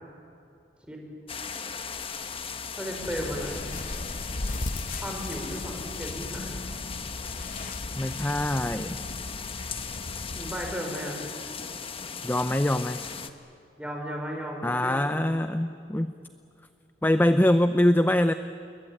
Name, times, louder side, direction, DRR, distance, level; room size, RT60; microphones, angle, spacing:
sound 1, 1.3-13.3, left 6 dB, 30° left, 1.3 m, -38 dB
voice 1, 2.8-3.8 5.0-6.6 10.3-11.3 13.8-15.4, equal, 5° right, 1 dB, 5.1 m, -35 dB
sound 2, 3.0-10.7, left 2 dB, 50° left, 0.9 m, -37 dB
voice 2, 8.0-9.0 12.2-13.0 14.6-16.1 17.0-18.3, left 1 dB, 10° left, 10 dB, 0.6 m, -23 dB
28.5 x 22.0 x 8.9 m, 2.7 s
head